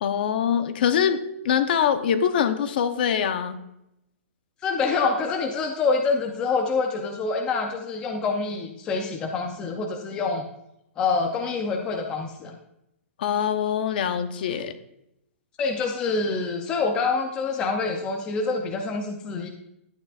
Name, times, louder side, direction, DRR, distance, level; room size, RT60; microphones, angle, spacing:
voice 1, 0.0-3.6 13.2-14.7, left 8 dB, 40° left, 9 dB, 0.8 m, -24 dB
voice 2, 4.6-10.4 11.0-12.6 15.6-19.5, left 4 dB, 10° left, 2 dB, 0.5 m, -26 dB
11.5 x 8.9 x 2.4 m, 0.81 s
hypercardioid pair, 175°, 7 cm